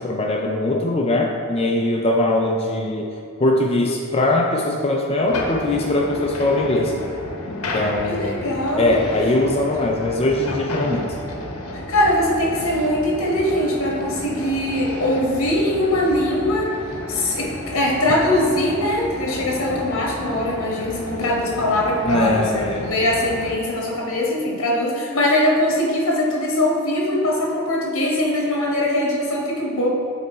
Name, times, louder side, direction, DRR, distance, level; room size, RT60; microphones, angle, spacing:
voice 1, 0.0-3.1 3.4-6.9 7.5-8.4 8.8-11.1 22.0-22.9, left 2 dB, 25° left, 0 dB, 0.4 m, -21 dB
sound 1, 5.3-23.5, left 1 dB, 80° left, 0.8 m, -32 dB
voice 2, 8.1-9.0 11.9-16.7 17.1-29.9, left 1 dB, 65° left, -3 dB, 1.2 m, -21 dB
8.0 x 3.5 x 4.2 m, 2.5 s
head